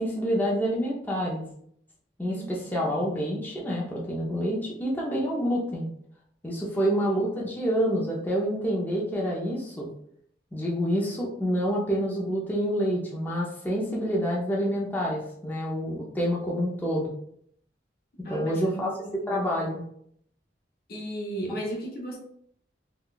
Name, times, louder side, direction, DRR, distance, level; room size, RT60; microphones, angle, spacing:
voice 1, 0.0-1.5 2.2-5.9 6.4-9.9 10.5-17.1 18.3-18.9 19.3-19.8, equal, 10° left, -4 dB, 0.5 m, -27 dB
voice 2, 2.2-2.9 6.6-7.1 18.2-19.5 20.9-22.2, right 1 dB, 55° left, 0 dB, 0.7 m, -36 dB
3.8 x 2.3 x 2.3 m, 0.68 s
head